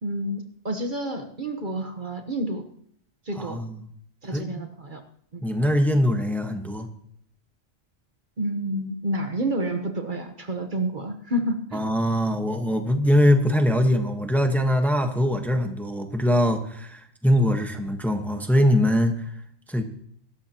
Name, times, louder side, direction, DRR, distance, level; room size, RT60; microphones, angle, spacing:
voice 1, 0.0-2.7 3.2-3.6 4.2-5.0 5.3-5.4 8.4-11.8, right 1 dB, 45° right, 6 dB, 1.3 m, -29 dB
voice 2, 3.4-3.8 4.3-4.7 5.4-6.9 11.7-19.3 19.7-19.8, equal, ahead, 5 dB, 1.2 m, -22 dB
23.0 x 13.0 x 3.0 m, 0.66 s
omnidirectional pair, 1.2 m